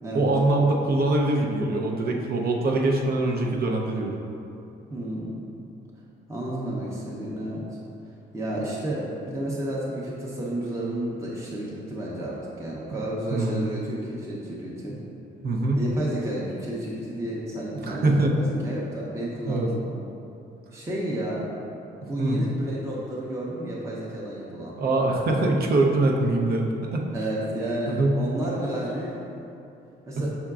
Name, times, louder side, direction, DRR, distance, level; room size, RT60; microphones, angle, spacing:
voice 1, 0.1-4.1 13.3-13.6 15.4-15.8 17.8-18.4 19.5-19.7 22.2-22.4 24.7-27.1 27.9-28.2, right 2 dB, 50° right, 1 dB, 0.6 m, -23 dB
voice 2, 4.9-5.4 6.3-7.7 8.3-15.0 15.8-19.8 20.7-21.5 22.1-24.8 27.1-29.2 30.1-30.3, right 1 dB, 15° right, -6 dB, 0.7 m, -31 dB
5.7 x 3.6 x 2.4 m, 2.7 s
cardioid pair, 90°, 20 cm